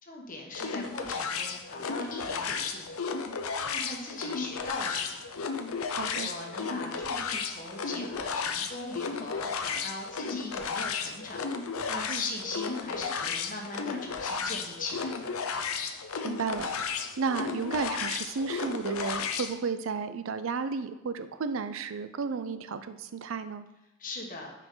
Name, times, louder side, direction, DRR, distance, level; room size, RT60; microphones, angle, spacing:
voice 1, 0.0-3.1 3.6-5.2 6.0-11.4 11.9-15.3 24.0-24.5, left 2 dB, 40° left, 0 dB, 1.3 m, -40 dB
sound 1, 0.5-19.5, left 5 dB, 80° left, 0.7 m, -34 dB
voice 2, 5.9-6.3 12.1-12.2 16.2-16.7 17.2-23.6, right 5 dB, 65° right, 11 dB, 0.4 m, -33 dB
9.5 x 5.0 x 3.8 m, 0.90 s
head